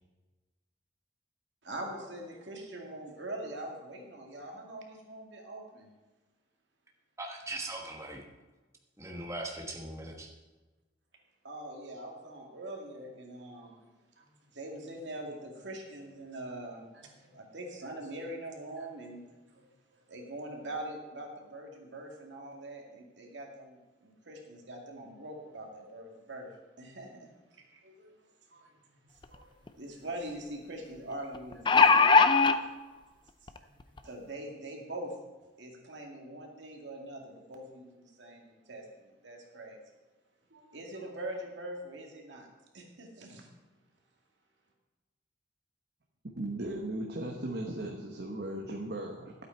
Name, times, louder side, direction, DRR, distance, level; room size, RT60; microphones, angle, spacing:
voice 1, 1.6-5.9 11.4-13.8 14.2-19.2 19.5-19.6 20.1-26.5 26.8-28.1 28.5-33.0 33.6-35.1 35.6-39.8 40.5-42.5 42.7-43.5, right 1 dB, 85° right, 1 dB, 2.2 m, -43 dB
voice 2, 7.2-8.2 9.0-10.3, right 2 dB, 15° right, 1 dB, 1.2 m, -39 dB
sound 1, 29.2-29.3 29.7-29.8 31.3-32.6 33.5-33.6 34.0-34.1, left 4 dB, 25° left, 0.5 m, -20 dB
voice 3, 46.3-49.3, right 1 dB, 60° right, 0 dB, 1.1 m, -37 dB
12.5 x 8.4 x 4.5 m, 1.2 s
head